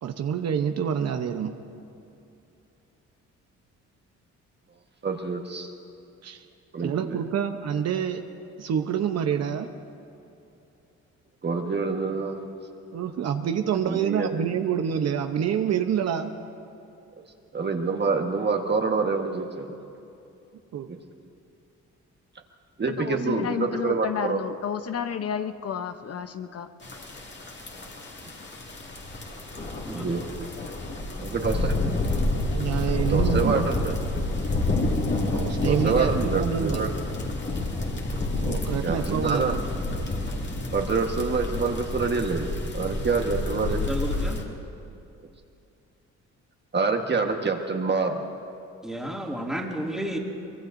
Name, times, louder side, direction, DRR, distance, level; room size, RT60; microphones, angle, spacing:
voice 1, 0.0-1.5 6.2-6.4 6.8-8.2 8.6-9.7 12.9-16.3 20.7-20.9 32.5-33.7 35.3-36.9 38.3-39.6, right 8 dB, 60° right, 6 dB, 0.9 m, -27 dB
voice 2, 5.0-5.7 6.7-7.2 11.4-12.4 13.8-14.4 17.5-19.7 20.9-21.0 22.8-24.4 29.9-30.2 31.3-31.6 33.1-33.9 35.6-36.9 38.8-39.6 40.7-42.5 42.7-43.8 46.7-48.3, right 4 dB, 35° right, 3 dB, 1.4 m, -26 dB
voice 3, 23.0-26.7, left 8 dB, 55° left, 8 dB, 0.8 m, -31 dB
sound 1, 26.8-44.4, left 2 dB, 35° left, 2.3 m, -29 dB
voice 4, 29.8-30.2 43.7-44.4 48.8-50.2, right 1 dB, ahead, -1 dB, 2.3 m, -31 dB
24.0 x 21.5 x 2.6 m, 2.7 s
cardioid pair, 90°, 30 cm